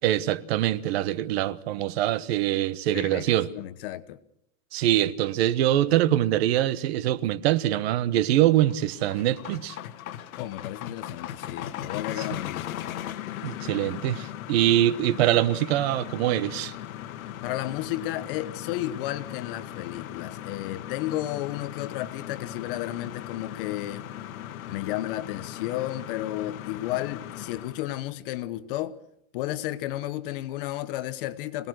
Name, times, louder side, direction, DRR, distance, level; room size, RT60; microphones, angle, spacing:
voice 1, 0.0-3.5 4.7-9.8 13.4-16.7, right 13 dB, 50° right, 1.2 m, -24 dB
voice 2, 2.9-4.2 10.4-12.8 17.4-24.1 24.7-29.0 29.3-31.7, left 14 dB, 40° left, 1.0 m, -33 dB
sound 1, 8.5-27.9, left 11 dB, 80° left, 1.6 m, -38 dB
26.5 x 18.5 x 6.3 m
supercardioid pair, 165°, 41 cm